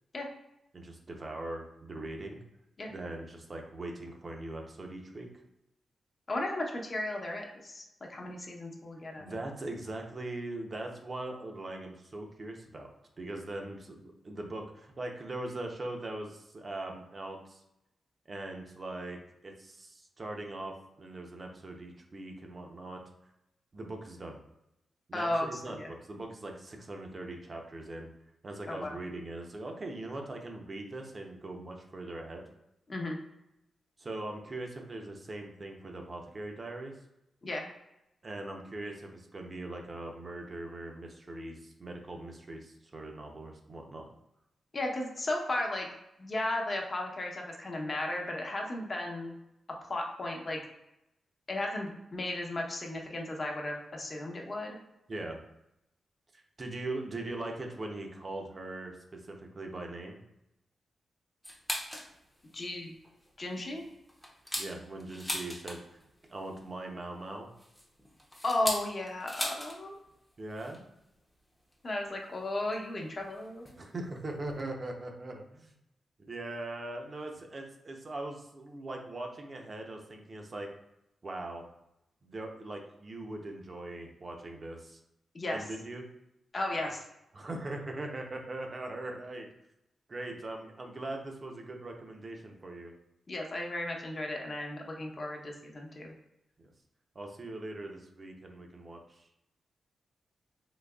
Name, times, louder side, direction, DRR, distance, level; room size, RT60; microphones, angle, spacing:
voice 1, 0.7-2.4 2.9-5.3 9.2-12.9 13.2-17.6 18.3-23.0 23.7-24.4 25.1-28.1 28.4-32.4 34.0-36.9 38.2-44.1 55.1-55.4 56.3-60.2 64.6-65.8 66.3-67.5 70.4-70.8 73.8-75.7 76.3-80.7 81.2-81.6 82.2-85.0 85.5-86.1 86.8-86.9 87.3-89.5 90.1-92.9 96.6-96.7 97.1-99.3, right 2 dB, 40° right, 2 dB, 0.7 m, -41 dB
voice 2, 6.3-7.8 8.1-9.2 25.1-25.9 28.7-28.9 32.9-33.2 37.4-37.7 44.7-45.9 46.2-49.3 49.9-50.6 51.5-54.8 62.5-62.9 63.4-63.8 68.4-70.0 71.8-73.8 85.3-85.6 86.5-87.0 93.3-96.1, left 1 dB, 40° left, 1 dB, 0.8 m, -35 dB
sound 1, 61.4-62.1 62.5-62.6 63.0-63.3 63.8-66.0 67.2-69.8 70.1-70.2 70.5-70.8 71.7-71.8 72.7-72.8 73.7-73.8 74.2-74.3 74.4-74.6, equal, 5° left, 0.7 m, -38 dB
4.0 x 2.8 x 2.3 m, 0.86 s
cardioid pair, 75°, 0 cm